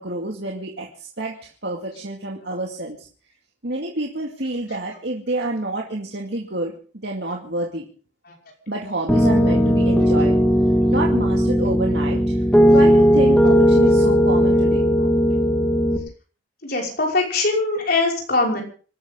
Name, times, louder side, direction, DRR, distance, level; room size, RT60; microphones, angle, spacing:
voice 1, 0.0-3.1 3.6-6.7 7.0-7.9 8.7-10.4 10.9-12.4 12.7-14.8, right 2 dB, 65° right, 0 dB, 2.3 m, -28 dB
Piano, 9.1-16.0, equal, 5° left, 2.5 m, -17 dB
voice 2, 16.6-18.6, left 3 dB, 55° left, 0 dB, 5.7 m, -22 dB
26.5 x 13.0 x 3.8 m, 0.41 s
head